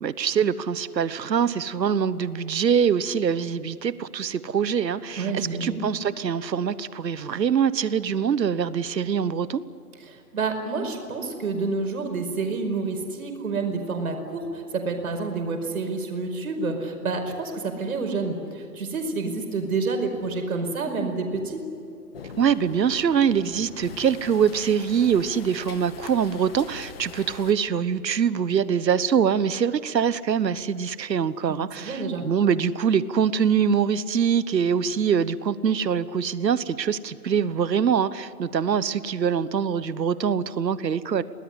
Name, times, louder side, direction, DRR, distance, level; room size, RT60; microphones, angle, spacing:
voice 1, 0.0-9.6 22.4-41.2, right 7 dB, 80° right, 16 dB, 1.3 m, -24 dB
voice 2, 5.2-5.9 10.1-21.6 31.5-32.2, right 3 dB, 55° right, 4 dB, 5.2 m, -29 dB
sound 1, 22.1-27.5, left 5 dB, 35° left, 1.7 m, -43 dB
26.5 x 19.0 x 9.9 m, 2.7 s
hypercardioid pair, 170°, 50 cm